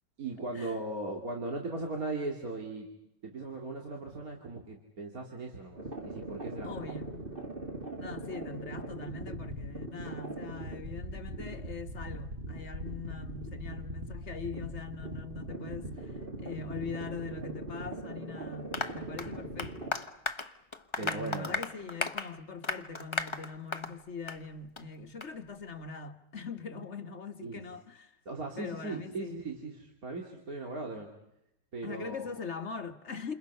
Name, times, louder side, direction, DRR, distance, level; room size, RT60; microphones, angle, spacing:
voice 1, 0.2-2.9 3.2-6.7 21.0-21.6 27.4-27.7 28.3-31.1 31.7-32.3, right 2 dB, 55° right, 3.1 m, -38 dB
sound 1, 5.8-19.9, right 1 dB, 30° right, 3.0 m, -41 dB
voice 2, 6.6-7.2 8.0-20.0 21.0-28.2 28.6-29.4 31.8-33.3, left 4 dB, 40° left, 1.6 m, -42 dB
Applause, 18.7-24.0 24.3-24.4 24.8-24.9 25.2-25.3, left 3 dB, 20° left, 0.9 m, -36 dB
29.0 x 28.0 x 5.6 m
omnidirectional pair, 1.9 m